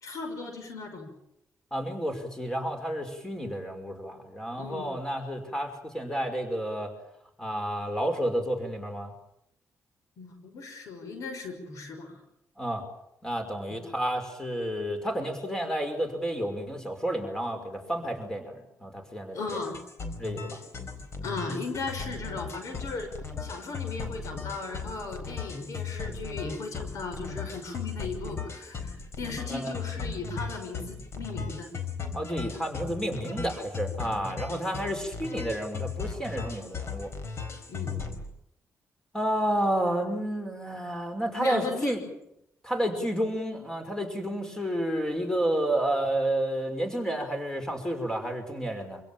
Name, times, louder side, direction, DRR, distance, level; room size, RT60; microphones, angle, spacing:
voice 1, 0.0-1.1 4.6-4.9 10.2-12.2 19.3-19.8 21.2-23.1 23.4-31.7 34.5-34.7 37.7-37.9 41.4-41.9, left 4 dB, 75° left, 7 dB, 5.9 m, -37 dB
voice 2, 1.7-6.9 7.4-9.1 12.6-12.8 13.2-19.7 20.2-20.6 29.5-29.7 32.1-37.1 39.1-42.0 42.6-49.0, right 1 dB, 10° left, 5 dB, 5.6 m, -30 dB
sound 1, 19.5-38.3, left 5 dB, 55° left, 4.4 m, -37 dB
26.5 x 17.0 x 8.9 m, 0.79 s
cardioid pair, 100°, 6 cm